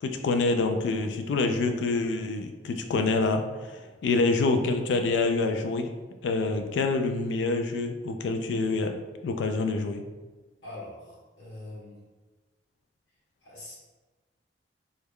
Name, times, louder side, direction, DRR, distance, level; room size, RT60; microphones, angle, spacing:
voice 1, 0.0-5.9 6.2-9.0 9.2-10.0, left 3 dB, 85° left, 6 dB, 0.3 m, -26 dB
voice 2, 10.6-12.0 13.4-13.7, left 1 dB, 70° left, -7 dB, 1.4 m, -43 dB
3.4 x 2.1 x 3.5 m, 1.2 s
head